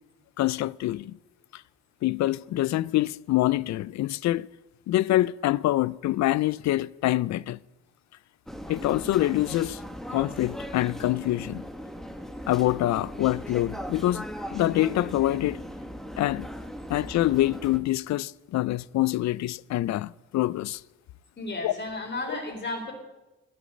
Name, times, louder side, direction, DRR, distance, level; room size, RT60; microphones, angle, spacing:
voice 1, 0.4-1.2 1.5-1.6 2.0-4.5 4.9-7.6 8.7-9.8 10.1-11.6 12.5-15.6 16.2-16.5 16.9-20.8 21.6-21.7, left 15 dB, 65° left, 0.5 m, -25 dB
sound 1, 8.5-17.8, equal, ahead, 1.3 m, -38 dB
voice 2, 21.4-22.9, left 2 dB, 35° left, 4.3 m, -33 dB
13.0 x 9.3 x 7.7 m
cardioid pair, 90°, 30 cm